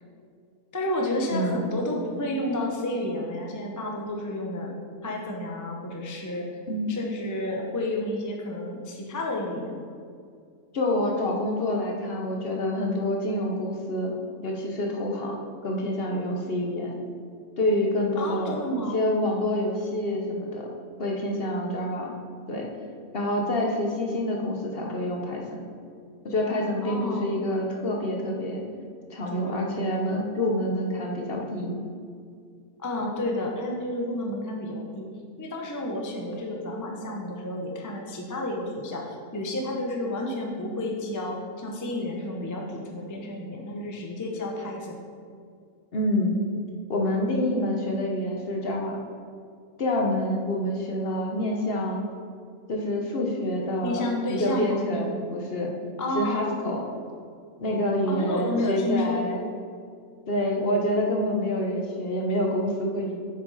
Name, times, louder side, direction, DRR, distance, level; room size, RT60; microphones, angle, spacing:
voice 1, 0.7-4.7 5.0-6.5 6.9-9.7 18.2-19.0 26.8-27.3 29.3-29.9 32.8-35.1 35.4-45.0 53.8-55.2 56.0-56.5 58.1-59.4, left 1 dB, 20° left, 0 dB, 0.5 m, -31 dB
voice 2, 1.3-1.7 6.7-7.0 10.7-14.1 14.4-15.4 15.6-17.0 17.6-18.6 18.9-20.7 21.0-22.1 22.5-22.7 23.1-25.6 26.2-28.6 29.1-31.8 45.9-46.4 46.9-49.0 49.8-52.0 52.7-55.7 56.1-56.8 57.6-59.4 60.3-63.1, left 1 dB, 45° left, 0 dB, 1.0 m, -27 dB
7.4 x 6.0 x 4.1 m, 2.2 s
omnidirectional pair, 1.6 m